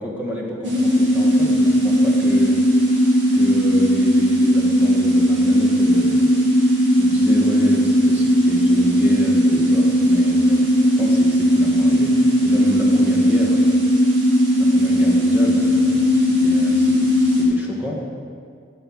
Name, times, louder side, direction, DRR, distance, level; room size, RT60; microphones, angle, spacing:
voice 1, 0.0-2.7 3.3-6.5 6.9-13.8 14.6-18.0, equal, 10° right, -2 dB, 1.4 m, -30 dB
sound 1, 0.6-17.4, equal, 80° right, 2.3 m, -17 dB
12.5 x 5.4 x 6.2 m, 2.2 s
head